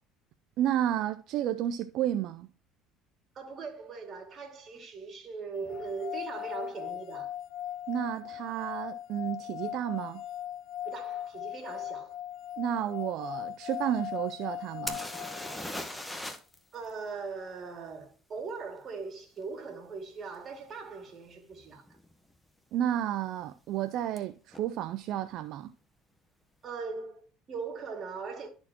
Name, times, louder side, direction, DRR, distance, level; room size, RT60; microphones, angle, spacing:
voice 1, 0.6-2.5 7.9-10.2 12.6-15.0 22.7-25.7, right 11 dB, 65° right, 0.4 m, -31 dB
voice 2, 3.3-7.3 10.8-12.2 16.7-22.0 26.6-28.5, right 4 dB, 45° right, 2.2 m, -40 dB
sound 1, 5.7-15.8, left 11 dB, 65° left, 0.4 m, -39 dB
sound 2, 14.9-16.6 16.8-16.9 20.3-20.4 21.1-21.3 21.5-22.1 24.2-24.3 24.5-24.6, left 1 dB, 5° left, 1.1 m, -38 dB
12.0 x 4.3 x 2.9 m
supercardioid pair, 90°, 0 cm